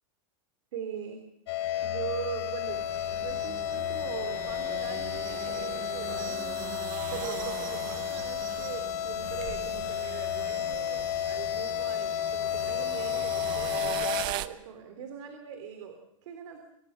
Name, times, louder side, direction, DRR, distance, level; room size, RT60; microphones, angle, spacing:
voice 1, 0.7-1.2 1.8-16.6, right 7 dB, 60° right, 6 dB, 3.4 m, -41 dB
sound 1, 1.5-14.3, left 11 dB, 50° left, 2.8 m, -32 dB
sound 2, 2.7-14.5, right 13 dB, 25° right, 0.7 m, -40 dB
25.0 x 17.5 x 7.5 m, 0.76 s
supercardioid pair, 175°, 18 cm